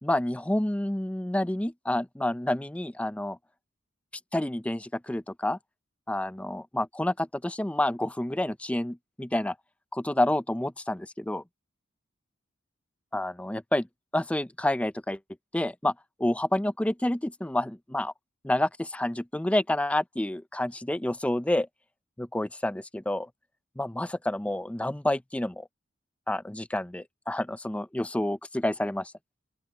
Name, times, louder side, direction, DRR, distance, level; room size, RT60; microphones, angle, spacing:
voice 1, 0.0-3.4 4.3-5.6 6.1-9.5 9.9-11.4 13.1-13.9 14.1-15.2 15.5-15.9 16.2-18.1 18.4-21.7 22.2-23.3 23.8-25.7 26.3-29.1, left 1 dB, 5° left, 0.5 m, -29 dB
open air
head